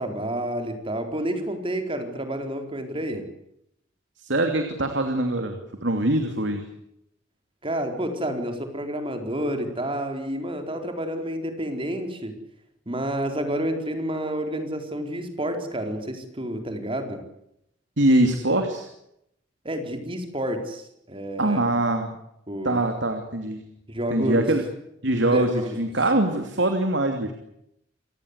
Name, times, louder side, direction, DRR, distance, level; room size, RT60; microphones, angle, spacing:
voice 1, 0.0-3.3 7.6-12.4 12.9-17.2 19.6-21.7 22.5-22.8 23.9-24.5 25.3-25.8, right 1 dB, 30° right, 6 dB, 4.3 m, -29 dB
voice 2, 4.2-6.6 18.0-18.9 21.4-22.1 22.6-23.6 24.1-24.6 25.0-27.3, right 1 dB, 70° right, 6 dB, 2.9 m, -23 dB
28.0 x 18.5 x 8.2 m, 0.79 s
head